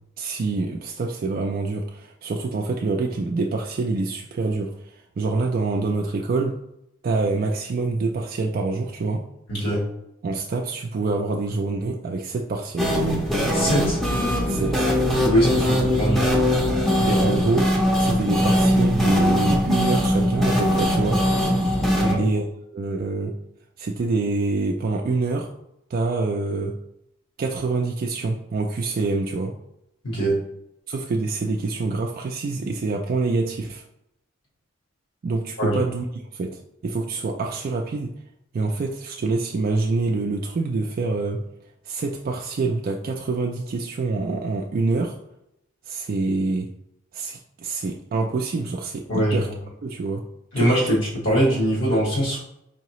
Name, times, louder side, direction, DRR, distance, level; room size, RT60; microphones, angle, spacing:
voice 1, 0.2-4.7 5.2-6.6 7.0-9.2 10.2-12.9 14.5-14.9 17.0-21.3 22.2-22.4 22.7-23.4 23.8-25.5 25.9-26.8 27.4-29.5 30.9-33.8 35.2-36.1 36.3-38.1 38.5-41.4 41.9-45.2 45.9-46.7 47.1-49.5 49.8-50.2 50.6-50.9, right 3 dB, 45° right, 2 dB, 0.3 m, -26 dB
voice 2, 9.5-9.9 13.5-14.0 15.2-16.4 22.0-22.2 30.0-30.4 35.6-35.8 49.1-49.4 50.5-52.4, equal, 70° left, -6 dB, 1.6 m, -22 dB
sound 1, 12.8-22.1, equal, ahead, 0.6 m, -21 dB
4.7 x 2.8 x 3.0 m, 0.81 s
head